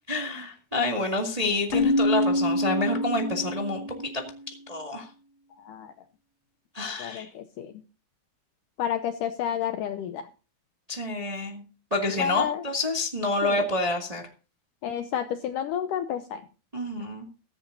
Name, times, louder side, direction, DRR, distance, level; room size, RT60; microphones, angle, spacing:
voice 1, 0.1-4.2 4.7-5.1 6.7-7.3 10.9-11.6 11.9-14.2 16.7-17.3, left 2 dB, 20° right, 1 dB, 1.1 m, -28 dB
Keyboard (musical), 1.7-4.4, left 1 dB, 60° left, 2.2 m, -26 dB
voice 2, 7.0-7.7 8.8-10.3 12.2-12.6 13.4-13.7 14.8-16.4, left 9 dB, 80° left, 9 dB, 1.9 m, -30 dB
15.5 x 14.5 x 2.7 m, 0.35 s
omnidirectional pair, 4.5 m